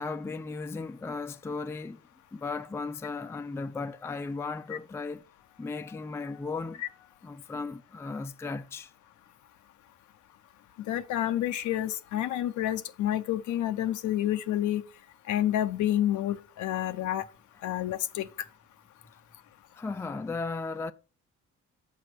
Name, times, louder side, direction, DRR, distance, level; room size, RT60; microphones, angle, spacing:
voice 1, 0.0-2.0 2.3-5.2 5.6-6.8 7.2-8.9 19.8-20.9, left 4 dB, 10° left, 0.4 m, -36 dB
voice 2, 10.9-14.8 15.3-17.2 17.6-18.3, left 12 dB, 75° left, 0.6 m, -29 dB
6.4 x 5.2 x 5.8 m
cardioid pair, 90°, 30 cm